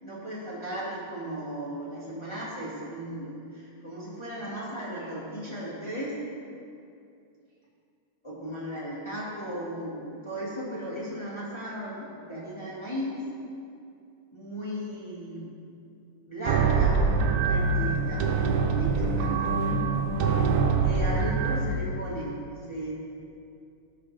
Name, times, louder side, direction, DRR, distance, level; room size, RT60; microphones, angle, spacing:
voice 1, 0.0-6.1 8.2-13.2 14.3-15.5 16.3-17.0 17.3-18.3 18.6-19.5 20.8-22.3 22.7-22.9, equal, 20° left, -8 dB, 0.8 m, -36 dB
sound 1, 16.5-21.6, right 5 dB, 85° right, 2.0 m, -24 dB
15.0 x 5.9 x 3.2 m, 2.5 s
omnidirectional pair, 3.4 m